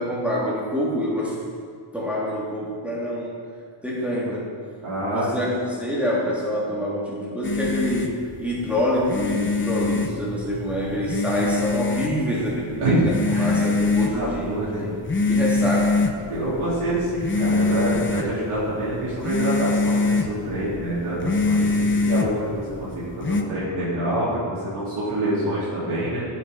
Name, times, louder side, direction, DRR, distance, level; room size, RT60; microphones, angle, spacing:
voice 1, 0.0-1.3 1.9-3.3 3.8-4.5 5.1-15.0 15.3-16.0, equal, 5° right, -7 dB, 2.9 m, -26 dB
voice 2, 4.8-5.5 12.8-13.6 14.1-14.8 16.3-26.2, right 1 dB, 85° right, -11 dB, 3.7 m, -26 dB
sound 1, 7.4-23.4, left 3 dB, 25° left, 0.8 m, -25 dB
13.5 x 8.4 x 5.6 m, 2.2 s
wide cardioid pair, 145°, 50 cm